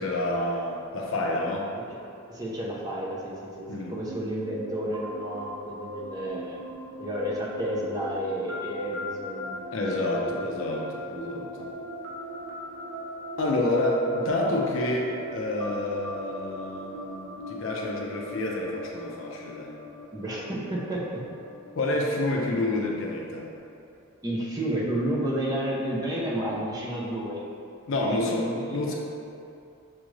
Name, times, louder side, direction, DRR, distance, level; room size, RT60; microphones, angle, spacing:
voice 1, 0.0-1.7 3.7-3.9 9.7-11.7 13.4-19.7 21.8-23.5 27.9-28.9, left 1 dB, 60° left, -1 dB, 0.5 m, -28 dB
voice 2, 2.3-6.6 7.0-9.7 10.2-11.0 20.1-21.2 24.2-27.4 28.0-28.9, right 1 dB, 15° right, -5 dB, 0.5 m, -31 dB
sound 1, 4.0-23.6, equal, 65° right, 0.6 m, -40 dB
6.0 x 2.5 x 3.1 m, 2.6 s
head